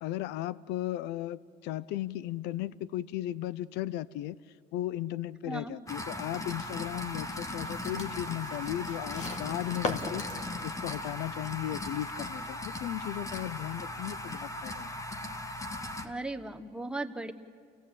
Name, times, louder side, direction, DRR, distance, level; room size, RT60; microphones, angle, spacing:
voice 1, 0.0-4.4 4.7-10.2 10.6-14.9, left 13 dB, 90° left, 20 dB, 0.5 m, -36 dB
voice 2, 5.4-5.7 16.0-17.3, right 2 dB, 5° right, 5 dB, 1.2 m, -37 dB
sound 1, 5.9-16.1, left 1 dB, 20° left, 1.4 m, -38 dB
sound 2, 6.5-12.3, left 3 dB, 40° left, 1.9 m, -42 dB
29.0 x 16.5 x 8.6 m, 2.1 s
cardioid pair, 110°, 17 cm